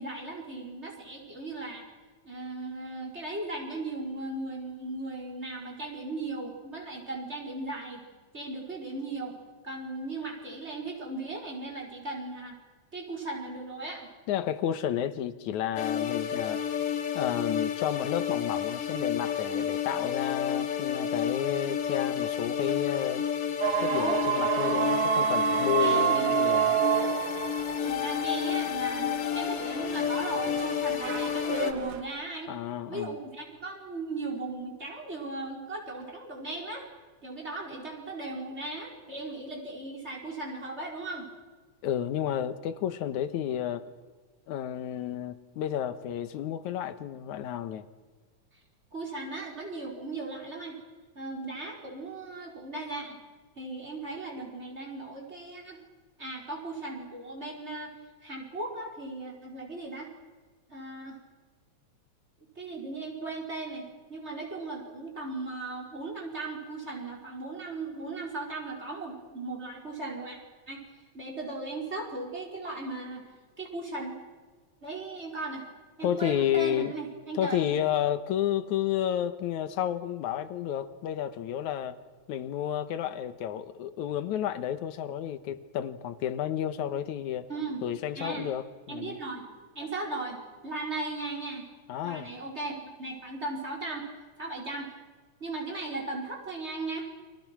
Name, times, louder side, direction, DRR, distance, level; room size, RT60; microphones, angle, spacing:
voice 1, 0.0-1.8 2.2-8.0 8.3-9.4 9.6-12.6 12.9-14.1 23.9-24.3 25.8-26.3 27.8-32.5 32.9-36.8 37.2-41.3 48.9-50.8 51.2-53.2 53.6-55.8 56.2-57.9 58.2-60.1 60.7-61.2 62.6-70.4 70.7-70.9 71.1-73.3 73.6-74.1 74.8-75.7 76.0-77.7 87.5-87.8 88.2-88.5 88.9-89.4 89.8-90.4 90.6-91.7 92.0-94.1 94.4-94.9 95.4-97.1, right 2 dB, 20° right, 0 dB, 5.2 m, -37 dB
voice 2, 14.3-16.7 17.1-23.2 23.8-26.8 32.5-33.2 41.8-43.9 44.5-47.9 76.0-76.9 77.3-82.0 82.3-87.5 87.8-89.2 91.9-92.3, left 10 dB, 90° left, 12 dB, 2.5 m, -31 dB
sound 1, 15.8-31.7, left 8 dB, 60° left, 2.1 m, -31 dB
sound 2, 23.6-32.0, right 8 dB, 55° right, 1.6 m, -29 dB
29.5 x 26.0 x 6.2 m, 1.4 s
omnidirectional pair, 3.3 m